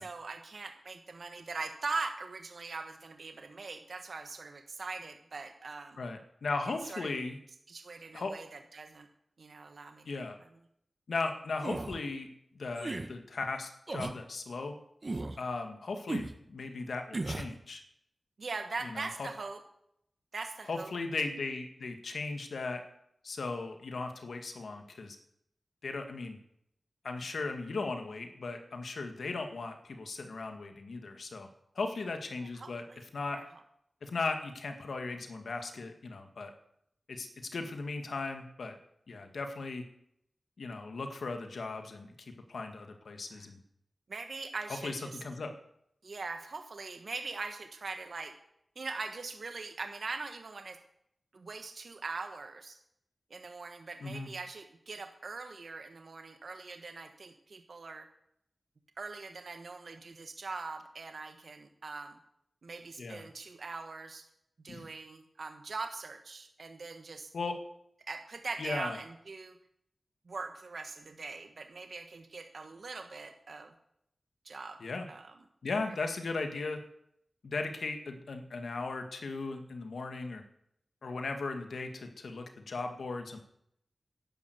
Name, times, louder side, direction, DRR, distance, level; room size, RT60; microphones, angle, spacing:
voice 1, 0.0-6.0 6.9-7.1 7.7-9.1 9.4-10.1 18.4-19.6 20.3-20.9 32.6-33.0 33.3-33.4 43.3-43.4 44.1-45.2 46.0-48.3 48.7-50.8 51.3-52.8 53.3-58.1 59.0-62.2 62.6-64.2 64.6-67.3 68.1-69.6 70.3-73.7 74.4-74.8 75.1-75.3, right 3 dB, 70° right, 6 dB, 1.3 m, -41 dB
voice 2, 6.0-7.4 8.1-8.4 10.1-10.4 11.1-12.3 12.5-14.7 15.4-17.8 18.8-19.3 20.7-22.9 23.2-25.2 25.8-26.4 27.0-31.5 31.8-32.8 33.1-33.4 34.0-36.5 37.1-38.8 39.1-39.8 40.6-43.6 44.7-45.5 54.0-54.3 63.0-63.3 64.7-64.9 67.3-67.6 68.6-69.0 74.8-75.1 75.6-76.8 77.4-80.4 81.0-83.4, left 3 dB, 85° left, 5 dB, 1.9 m, -37 dB
sound 1, 11.6-12.0 12.8-13.1 13.9-14.2 15.0-15.4 16.1-16.3 17.1-17.5, right 2 dB, 45° right, 1.4 m, -35 dB
11.5 x 11.0 x 8.1 m, 0.75 s
wide cardioid pair, 65°, 0 cm